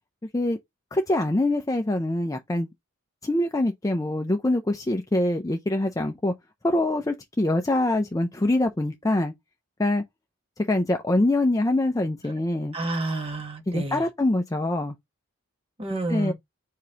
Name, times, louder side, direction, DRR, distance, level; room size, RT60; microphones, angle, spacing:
voice 1, 0.9-2.7 3.2-6.3 6.6-9.3 9.8-10.0 10.6-12.8 13.7-14.9 16.1-16.3, left 1 dB, 15° left, 0.4 m, -24 dB
voice 2, 12.7-14.0 15.8-16.3, right 2 dB, 25° right, 1.2 m, -29 dB
5.0 x 3.6 x 2.9 m
head